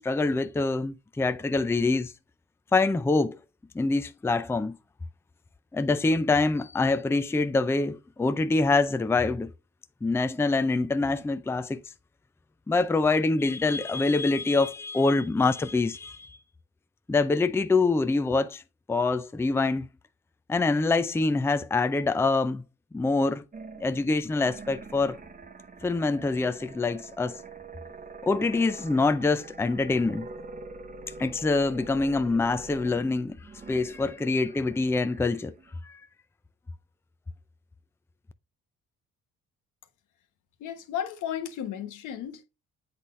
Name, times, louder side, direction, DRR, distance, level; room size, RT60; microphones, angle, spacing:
voice 1, 0.0-2.1 2.7-3.4 3.7-4.7 5.7-9.5 10.0-11.8 12.7-16.4 17.1-18.6 18.9-19.9 20.5-22.6 22.9-23.4 23.8-25.2 25.8-27.4 28.2-30.3 31.2-33.4 33.7-35.5 35.8-36.0, left 3 dB, 10° left, 0.4 m, -25 dB
sound 1, 23.5-35.8, right 4 dB, 25° right, 0.9 m, -45 dB
voice 2, 40.6-42.4, left 9 dB, 85° left, 1.2 m, -34 dB
8.1 x 4.1 x 3.2 m
cardioid pair, 90°, 30 cm